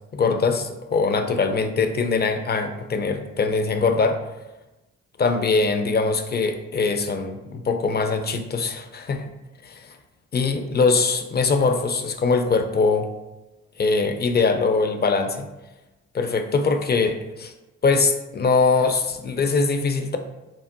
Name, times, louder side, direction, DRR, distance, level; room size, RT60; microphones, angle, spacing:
voice 1, 0.1-4.2 5.2-9.2 9.6-9.9 10.3-13.1 13.8-15.5 16.1-17.5 17.8-20.2, left 4 dB, 30° left, 6 dB, 0.4 m, -22 dB
3.5 x 2.0 x 2.6 m, 1.0 s
supercardioid pair, 45°, 34 cm